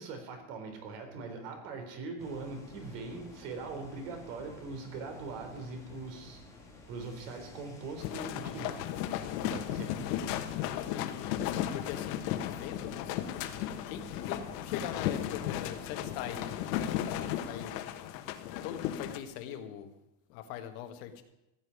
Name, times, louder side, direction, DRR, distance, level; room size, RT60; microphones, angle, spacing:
voice 1, 0.0-6.6 6.9-8.8 9.4-10.3, right 3 dB, 75° right, 5 dB, 3.9 m, -41 dB
sound 1, 2.2-17.5, left 2 dB, 5° left, 2.3 m, -51 dB
sound 2, 8.0-19.2, left 11 dB, 80° left, 1.5 m, -35 dB
voice 2, 10.8-11.3 11.7-13.3 13.9-17.7 18.6-19.9 20.3-21.2, left 9 dB, 60° left, 6 dB, 1.8 m, -42 dB
15.0 x 7.2 x 9.7 m, 0.91 s
cardioid pair, 175°, 47 cm